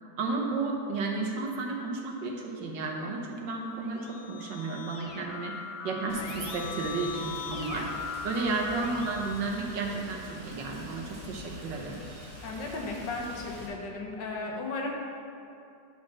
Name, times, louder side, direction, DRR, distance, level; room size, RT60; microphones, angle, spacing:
voice 1, 0.2-7.9 8.2-12.0, right 3 dB, 90° right, 0 dB, 1.8 m, -33 dB
Keyboard (musical), 3.7-10.3, left 5 dB, 55° left, 0.8 m, -40 dB
Rain, 6.1-13.7, left 1 dB, 35° right, 2.2 m, -45 dB
voice 2, 12.4-14.9, left 3 dB, 80° left, 0 dB, 1.8 m, -35 dB
10.0 x 4.6 x 6.1 m, 2.5 s
omnidirectional pair, 1.9 m